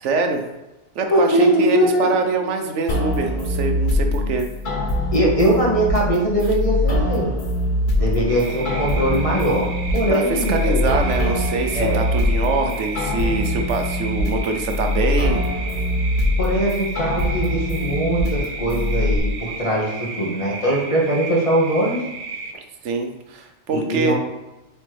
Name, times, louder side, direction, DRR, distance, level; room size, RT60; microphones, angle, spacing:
voice 1, 0.0-0.4 0.9-4.5 10.1-15.4 22.8-24.1, right 4 dB, 80° right, 5 dB, 1.1 m, -24 dB
voice 2, 1.1-2.1 5.1-7.3 7.9-10.8 11.7-12.0 16.4-19.9 20.2-22.0 23.7-24.1, right 1 dB, 30° left, -4 dB, 1.6 m, -21 dB
sound 1, 2.9-19.2, left 1 dB, 45° left, 1.0 m, -23 dB
sound 2, 8.3-22.5, right 4 dB, 55° right, 0.7 m, -34 dB
7.6 x 4.1 x 3.4 m, 1.0 s
omnidirectional pair, 1.2 m